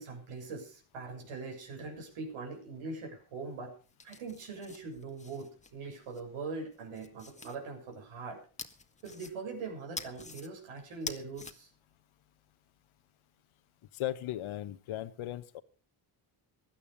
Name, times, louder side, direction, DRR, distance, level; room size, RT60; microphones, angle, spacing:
voice 1, 0.0-3.8 4.0-8.4 9.0-11.7, right 4 dB, 75° right, 2 dB, 7.3 m, -42 dB
sound 1, 3.8-6.2 6.7-7.6 8.6-9.6 10.0-10.5 10.9-11.5, left 3 dB, 15° left, 1.6 m, -45 dB
voice 2, 13.9-15.6, left 13 dB, 75° left, 13 dB, 1.3 m, -37 dB
16.5 x 12.0 x 5.1 m, 0.38 s
cardioid pair, 110°, 50 cm